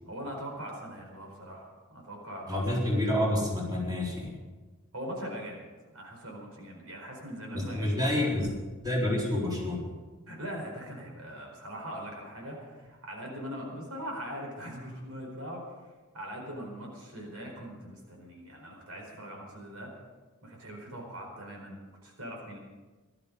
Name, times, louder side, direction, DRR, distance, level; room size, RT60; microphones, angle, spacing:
voice 1, 0.1-2.8 4.9-5.7 5.9-8.4 10.3-15.6 16.1-19.9 20.4-22.6, equal, 80° right, 1 dB, 4.7 m, -41 dB
voice 2, 2.5-4.3 7.5-8.5 8.8-9.9, left 1 dB, 20° right, -4 dB, 4.0 m, -28 dB
17.5 x 12.5 x 5.4 m, 1.3 s
head